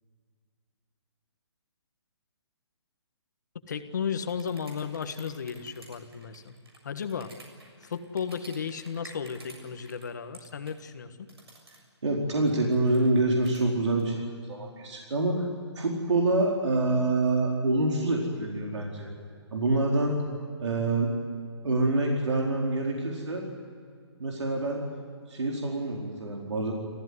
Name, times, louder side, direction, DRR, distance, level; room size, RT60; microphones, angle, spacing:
voice 1, 3.7-6.6 6.8-7.3 7.8-11.3, left 6 dB, 40° left, 9 dB, 1.5 m, -34 dB
sound 1, 4.2-10.0 10.3-10.8 11.3-11.8 12.4-14.0, right 2 dB, 60° right, 7.0 m, -51 dB
voice 2, 12.0-15.5 15.8-19.1 19.5-20.2 20.6-21.1 21.6-23.4 24.2-24.8 25.3-26.7, right 2 dB, 90° right, -1 dB, 4.4 m, -26 dB
28.5 x 15.0 x 9.7 m, 2.2 s
hypercardioid pair, 180°, 15 cm